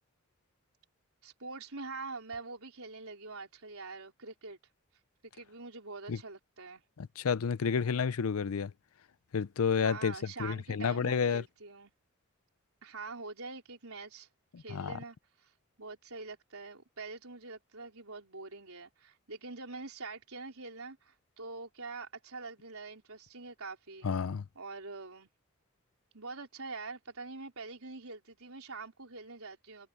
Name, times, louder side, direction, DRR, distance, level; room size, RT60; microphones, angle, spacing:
voice 1, 1.2-4.6 5.3-6.8 9.7-11.9 12.8-14.3 14.6-15.5 15.8-24.1 24.6-25.3 26.1-29.9, right 3 dB, 90° right, 4.3 m, -45 dB
voice 2, 7.0-8.7 9.3-10.1 10.4-11.4 14.5-15.0 24.0-24.4, left 6 dB, 85° left, 0.5 m, -30 dB
head